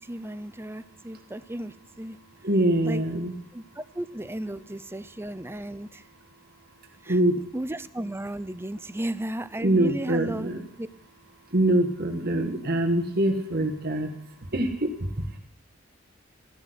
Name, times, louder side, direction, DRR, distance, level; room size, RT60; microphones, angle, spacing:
voice 1, 0.0-2.2 2.8-3.0 3.5-6.0 7.0-7.1 7.5-10.5 10.8-10.9, right 1 dB, 10° right, 13 dB, 0.7 m, -34 dB
voice 2, 2.4-3.3 7.1-7.4 9.6-10.7 11.5-14.1 14.4-15.4, right 1 dB, 50° right, 4 dB, 1.8 m, -24 dB
14.5 x 12.0 x 8.0 m, 0.70 s
head